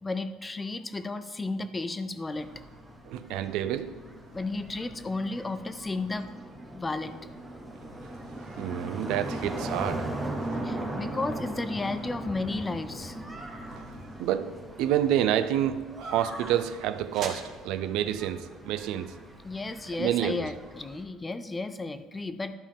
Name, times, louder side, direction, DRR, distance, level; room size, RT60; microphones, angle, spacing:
voice 1, 0.0-2.5 4.3-6.3 6.7-7.1 10.6-13.2 19.4-22.5, left 3 dB, 15° left, 0.3 m, -33 dB
sound 1, 2.3-21.0, right 1 dB, 10° right, 0.9 m, -39 dB
voice 2, 3.1-4.0 8.6-10.1 13.7-13.9 14.2-19.2 20.0-20.5, right 11 dB, 70° right, 0.4 m, -28 dB
sound 2, 14.5-20.4, right 5 dB, 40° right, 1.0 m, -48 dB
12.0 x 5.3 x 3.5 m
cardioid pair, 155°, 0 cm